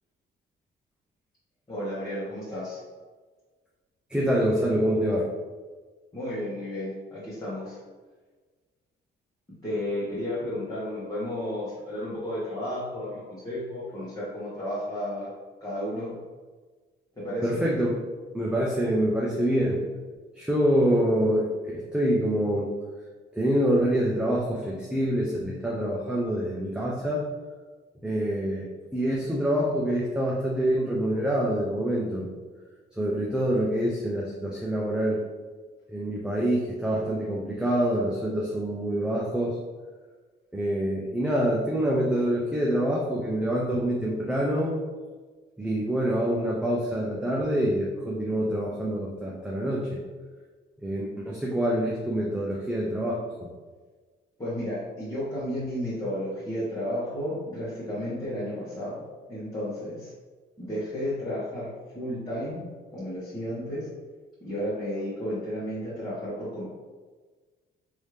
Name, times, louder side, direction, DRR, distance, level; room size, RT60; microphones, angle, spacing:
voice 1, 1.7-2.8 6.1-7.8 9.6-15.3 15.6-16.1 17.2-17.6 54.4-59.0 59.3-60.1 60.6-62.6 62.9-63.9 64.4-66.7, left 1 dB, 20° left, -11 dB, 1.3 m, -32 dB
voice 2, 4.1-5.3 17.4-17.9 18.3-19.8 20.4-22.7 23.3-27.3 28.0-28.7 28.9-32.3 32.9-35.2 35.9-39.6 40.5-44.8 45.6-50.0 50.8-53.5, equal, 5° right, -4 dB, 0.5 m, -26 dB
3.2 x 2.7 x 3.2 m, 1.4 s
cardioid pair, 90°, 20 cm